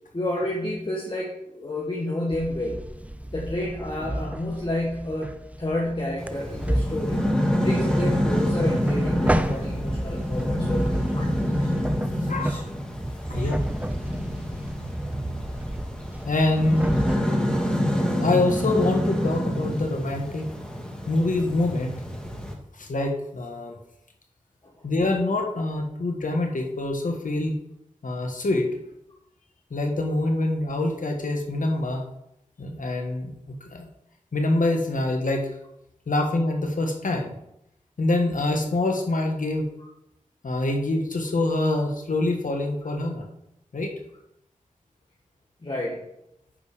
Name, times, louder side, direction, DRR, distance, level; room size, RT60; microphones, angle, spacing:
voice 1, 0.1-3.0 3.3-7.2 7.6-11.3 11.6-11.7 12.4-12.6 13.2-13.5 24.6-24.7 45.6-46.0, left 1 dB, 40° left, -2 dB, 1.7 m, -30 dB
sound 1, 2.3-17.2, right 1 dB, 10° right, 0.6 m, -32 dB
sound 2, 6.2-22.5, equal, 5° left, 2.1 m, -27 dB
voice 2, 12.2-12.7 13.3-13.7 16.2-16.9 18.2-20.5 21.1-22.0 22.7-23.8 24.8-27.5 28.0-28.8 29.7-32.1 32.6-33.9 34.3-35.5 36.1-37.3 38.0-39.6 40.4-43.3 43.7-43.9, left 2 dB, 80° left, 2 dB, 1.5 m, -25 dB
9.4 x 5.3 x 5.1 m, 0.82 s
wide cardioid pair, 60°, 13 cm